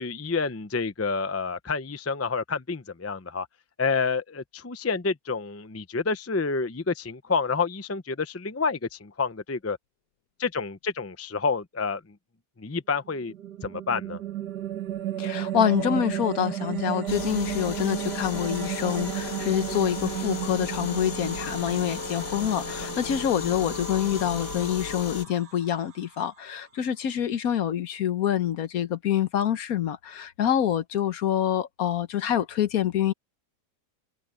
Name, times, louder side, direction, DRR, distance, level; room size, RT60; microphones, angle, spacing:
voice 1, 0.0-3.5 3.8-9.8 10.4-12.0 12.6-13.3 13.6-14.2, left 4 dB, 20° left, 0.3 m, -28 dB
sound 1, 13.1-26.4, right 12 dB, 75° right, 2.0 m, -34 dB
voice 2, 15.2-33.1, left 10 dB, 65° left, 1.3 m, -26 dB
sound 2, 17.1-25.2, left 5 dB, 80° left, 2.3 m, -36 dB
omnidirectional pair, 1.8 m